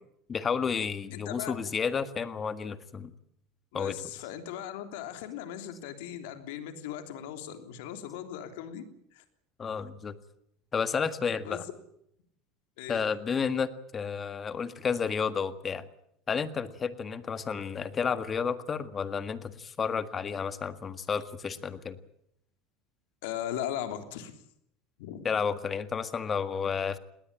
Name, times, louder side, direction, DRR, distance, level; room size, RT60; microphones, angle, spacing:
voice 1, 0.3-3.1 3.7-3.9 9.6-10.1 10.7-11.7 12.9-15.8 16.3-22.0 25.2-27.0, left 6 dB, 25° left, 12 dB, 1.7 m, -31 dB
voice 2, 1.1-1.5 3.7-8.8 9.1-9.2 11.4-11.7 12.8-13.0 23.2-24.4 25.0-25.3, left 10 dB, 85° left, 8 dB, 3.4 m, -38 dB
20.5 x 18.5 x 8.9 m, 0.74 s
supercardioid pair, 125°, 0 cm